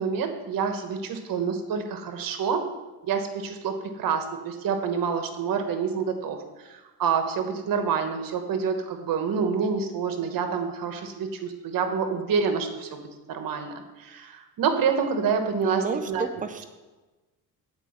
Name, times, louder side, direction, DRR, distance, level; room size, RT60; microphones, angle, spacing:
voice 1, 0.0-2.7 3.0-6.4 6.7-13.0 13.3-16.2, right 6 dB, 65° right, 7 dB, 1.2 m, -27 dB
voice 2, 15.6-16.7, right 5 dB, 20° right, 8 dB, 0.6 m, -30 dB
8.3 x 4.8 x 7.1 m, 1.2 s
cardioid pair, 110°, 36 cm